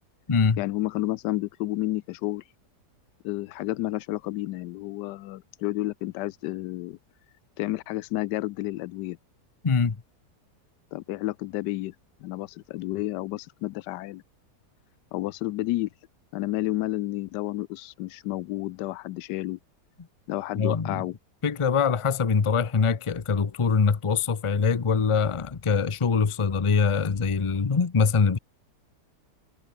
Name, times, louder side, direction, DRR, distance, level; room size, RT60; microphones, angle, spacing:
voice 1, 0.6-2.4 3.2-7.0 7.6-9.2 10.9-11.9 12.2-14.2 15.1-15.9 16.3-19.6 20.3-21.1, left 16 dB, 90° left, 1.2 m, -31 dB
voice 2, 9.6-10.0 20.6-21.0 21.4-28.4, left 5 dB, 30° left, 0.6 m, -23 dB
omnidirectional pair, 1.8 m